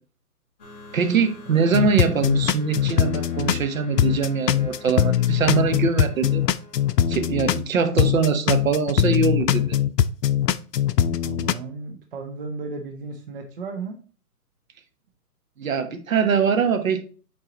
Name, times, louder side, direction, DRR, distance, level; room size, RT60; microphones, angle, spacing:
sound 1, 0.6-7.9, left 2 dB, 25° left, 1.3 m, -45 dB
voice 1, 0.9-6.4 7.1-9.8 15.6-17.0, right 5 dB, 55° right, 1.1 m, -22 dB
sound 2, 1.7-3.7 4.0-7.7 8.0-11.5, left 10 dB, 85° left, 0.6 m, -21 dB
voice 2, 11.2-14.0, right 4 dB, 35° right, 0.8 m, -35 dB
6.1 x 4.6 x 3.9 m
hypercardioid pair, 160°, 47 cm